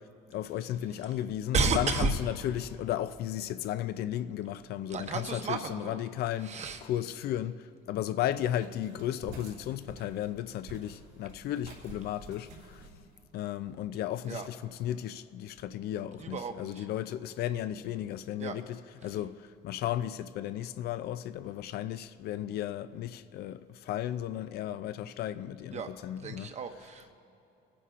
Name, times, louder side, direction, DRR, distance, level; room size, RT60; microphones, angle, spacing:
voice 1, 0.3-12.9 13.3-26.5, left 11 dB, 70° left, 0.4 m, -34 dB
voice 2, 1.5-2.1 4.9-6.0 6.4-6.8 14.3-14.5 16.2-16.9 18.4-18.6 25.7-25.9 26.2-27.1, right 4 dB, 40° right, 1.0 m, -32 dB
sound 1, 8.6-13.9, right 2 dB, 80° right, 3.4 m, -50 dB
27.5 x 9.9 x 2.5 m
cardioid pair, 110°, 17 cm